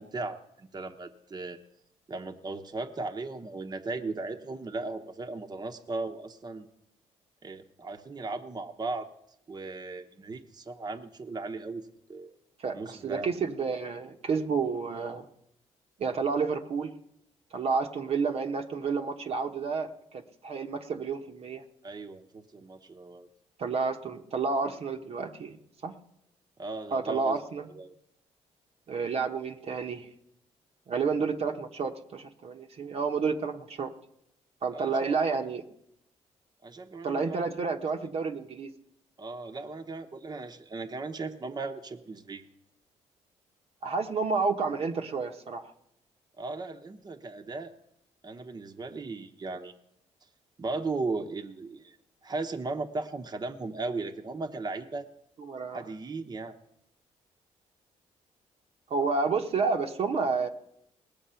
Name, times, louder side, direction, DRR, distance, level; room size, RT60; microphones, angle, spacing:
voice 1, 0.0-1.6 2.1-6.7 7.4-9.1 9.5-12.3 12.7-13.3 21.8-23.3 26.6-27.3 27.7-27.9 34.7-35.2 36.6-37.4 39.2-42.5 46.4-47.7 48.2-49.7 50.6-52.0 52.2-55.1 55.7-56.6, right 3 dB, 35° right, 4 dB, 1.0 m, -37 dB
voice 2, 12.6-15.3 16.0-16.9 17.5-21.6 23.6-25.6 25.8-25.9 26.9-27.7 28.9-30.1 30.9-33.9 34.6-35.6 37.0-38.7 43.8-45.7 55.4-55.9 58.9-60.5, right 4 dB, 55° right, 3 dB, 1.0 m, -30 dB
19.5 x 7.1 x 5.7 m, 0.79 s
cardioid pair, 80°, 12 cm